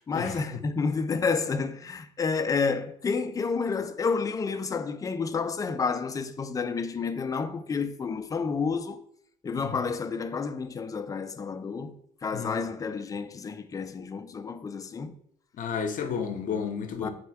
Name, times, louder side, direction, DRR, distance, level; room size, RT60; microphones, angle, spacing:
voice 1, 0.1-9.0 9.4-15.1 17.0-17.1, left 5 dB, 20° left, 0.3 m, -30 dB
voice 2, 15.6-17.1, left 6 dB, 50° left, 0.7 m, -31 dB
4.3 x 2.2 x 4.5 m
cardioid pair, 110°, 17 cm